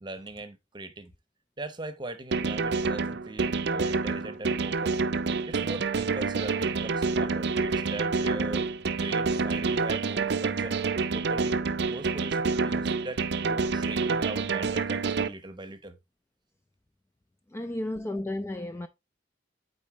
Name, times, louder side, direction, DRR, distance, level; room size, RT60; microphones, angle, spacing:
voice 1, 0.0-1.1 1.6-5.0 5.5-8.7 9.0-10.8 11.1-11.6 11.9-16.0, right 2 dB, 25° right, 0.8 m, -40 dB
sound 1, 2.3-15.3, right 4 dB, 60° right, 0.5 m, -28 dB
voice 2, 17.5-18.9, left 1 dB, 15° left, 0.3 m, -33 dB
8.6 x 4.2 x 3.0 m
head